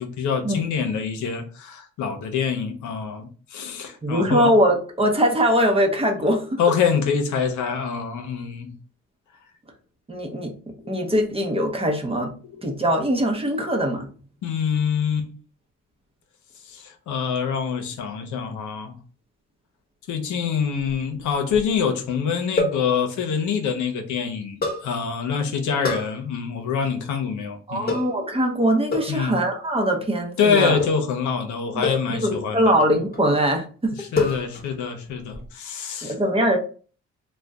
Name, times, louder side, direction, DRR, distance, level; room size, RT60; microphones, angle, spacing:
voice 1, 0.0-4.5 6.6-8.7 14.4-15.3 16.7-19.0 20.1-28.0 29.1-29.4 30.4-32.6 34.0-36.1, left 6 dB, 75° left, 5 dB, 0.7 m, -25 dB
voice 2, 4.0-6.6 10.1-10.5 10.9-12.3 12.6-14.1 27.7-30.8 31.7-34.0 36.0-36.6, equal, 20° right, 2 dB, 0.7 m, -22 dB
sound 1, 20.8-21.8 22.6-22.9 24.6-24.9 25.8-26.1 27.9-28.2 28.9-29.2 30.8-31.1 31.8-32.2 32.8-33.3 34.2-34.8 35.0-35.5, left 3 dB, 30° left, 1.0 m, -27 dB
2.6 x 2.2 x 3.4 m, 0.40 s
cardioid pair, 90°, 30 cm